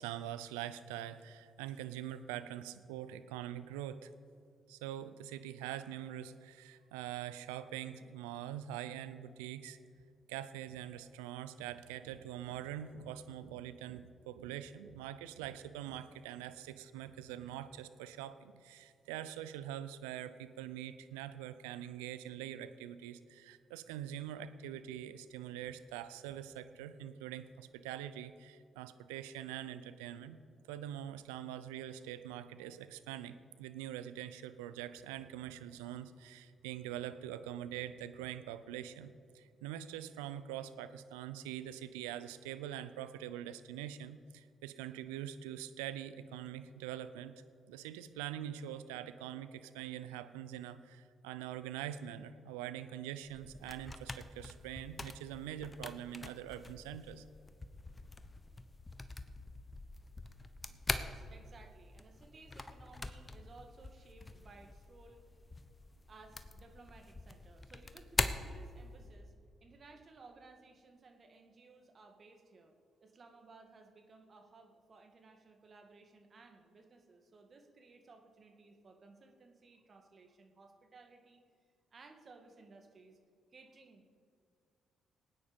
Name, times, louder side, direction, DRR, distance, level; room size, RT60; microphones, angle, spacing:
voice 1, 0.0-4.1 4.7-9.8 10.3-30.4 30.7-47.3 47.7-57.2 60.7-60.8, right 11 dB, 90° right, 12 dB, 0.5 m, -44 dB
sound 1, 53.2-69.2, left 2 dB, 25° left, 1.1 m, -43 dB
voice 2, 60.9-65.3 66.1-69.3 69.6-81.4 81.9-83.2 83.5-84.2, right 3 dB, 50° right, 4 dB, 2.0 m, -59 dB
19.0 x 9.4 x 5.3 m, 2.2 s
hypercardioid pair, 50°, 0 cm